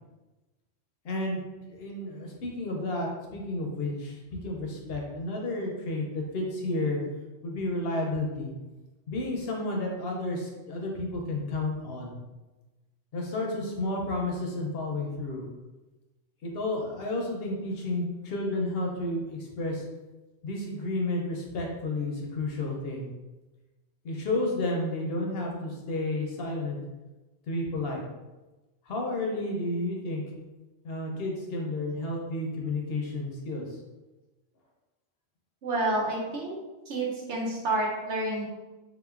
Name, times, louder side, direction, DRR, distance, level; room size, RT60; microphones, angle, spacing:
voice 1, 1.0-1.4 1.7-7.0 7.4-8.5 9.1-12.2 13.1-15.4 16.4-19.8 20.4-23.1 24.0-26.8 27.5-28.0 28.9-30.2 30.8-33.7, left 2 dB, 65° left, 0 dB, 0.8 m, -31 dB
voice 2, 35.6-36.6 36.9-38.4, right 2 dB, 75° right, -2 dB, 1.1 m, -29 dB
3.6 x 2.9 x 2.4 m, 1.1 s
omnidirectional pair, 1.2 m